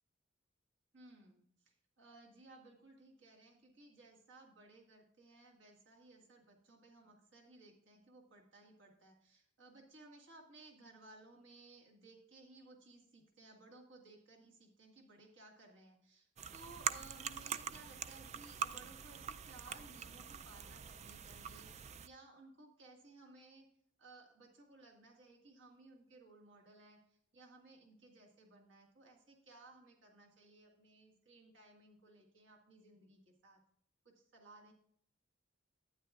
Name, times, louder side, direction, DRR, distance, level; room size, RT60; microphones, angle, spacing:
voice 1, 0.9-23.7 24.0-33.6 34.1-34.7, right 2 dB, 70° right, 0 dB, 1.8 m, -60 dB
sound 1, 16.4-22.1, right 7 dB, 35° right, 0.3 m, -44 dB
11.5 x 9.5 x 2.4 m, 0.65 s
head